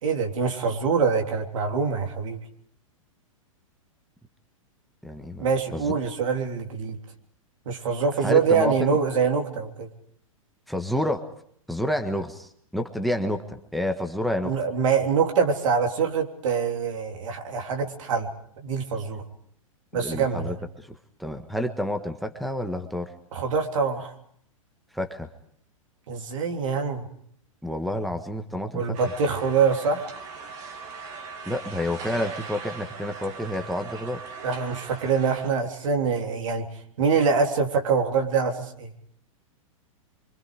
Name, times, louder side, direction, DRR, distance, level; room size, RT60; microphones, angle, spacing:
voice 1, 0.0-2.4 5.4-7.0 7.7-9.9 14.4-18.3 18.6-19.2 19.9-20.6 23.3-24.1 26.1-27.1 28.7-30.0 34.4-36.7 37.0-38.9, right 5 dB, 65° right, 4 dB, 3.5 m, -24 dB
voice 2, 5.0-5.5 5.7-6.0 8.2-9.0 10.7-11.3 11.7-14.5 20.0-23.1 24.9-25.3 27.6-29.0 31.4-34.2, left 1 dB, ahead, 7 dB, 1.5 m, -29 dB
sound 1, 28.9-35.5, right 5 dB, 40° right, 2.9 m, -40 dB
26.0 x 25.0 x 5.0 m, 0.65 s
hypercardioid pair, 115°, 17 cm